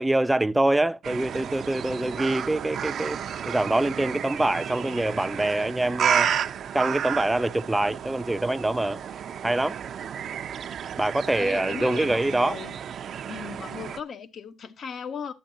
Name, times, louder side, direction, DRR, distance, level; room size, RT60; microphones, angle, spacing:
voice 1, 0.0-3.2 3.5-6.3 6.7-9.0 9.4-9.7 11.0-12.6, right 1 dB, 10° right, 0.6 m, -25 dB
sound 1, 1.0-14.0, right 8 dB, 60° right, 0.6 m, -32 dB
voice 2, 11.4-12.8 13.3-15.3, left 6 dB, 55° left, 1.1 m, -37 dB
11.5 x 8.5 x 2.7 m
cardioid pair, 90°, 0 cm